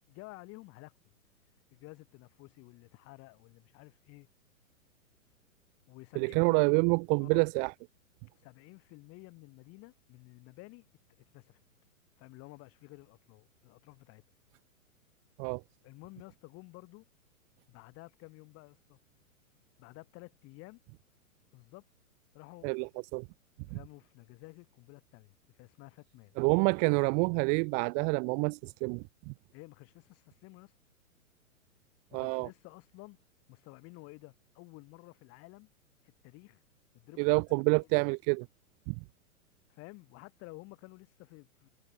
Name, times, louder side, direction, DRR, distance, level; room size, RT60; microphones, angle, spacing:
voice 1, 0.1-0.9 1.7-4.3 5.9-6.9 7.2-7.5 8.4-10.9 11.3-11.6 12.2-14.2 15.8-17.1 17.7-19.0 19.8-20.8 21.5-21.9 22.3-22.7 23.6-26.3 29.5-30.7 32.1-33.2 33.5-35.7 36.0-36.6 36.9-37.4 37.7-37.9 39.7-41.7, left 24 dB, 35° left, 6.0 m, -52 dB
voice 2, 6.2-7.7 15.4-15.6 22.6-23.2 23.7-23.8 26.4-29.3 32.1-32.5 37.2-38.5 38.9-39.0, right 40 dB or more, 20° right, 0.5 m, -28 dB
figure-of-eight pair, 110°, 42 cm